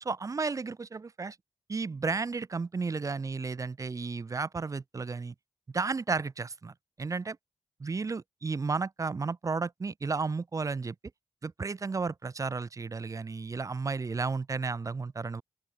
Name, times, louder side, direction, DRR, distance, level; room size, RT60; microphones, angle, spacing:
voice 1, 0.0-1.4 1.7-5.3 5.7-7.4 7.8-10.9 11.4-15.4, right 4 dB, 30° right, 0.4 m, -33 dB
open air
wide cardioid pair, 85°, 11 cm